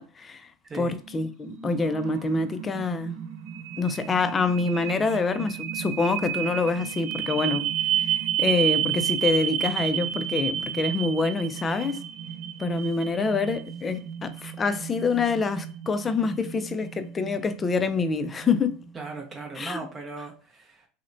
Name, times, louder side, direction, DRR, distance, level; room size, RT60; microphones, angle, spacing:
voice 1, 0.0-0.5 0.7-3.2 3.8-7.7 8.1-12.0 12.6-18.8 19.6-19.8, left 4 dB, 25° left, 0.3 m, -26 dB
voice 2, 0.6-1.0 18.9-20.9, right 3 dB, 25° right, 0.7 m, -38 dB
sound 1, 1.1-19.1, right 11 dB, 70° right, 0.4 m, -31 dB
2.9 x 2.1 x 2.5 m
supercardioid pair, 100°, 0 cm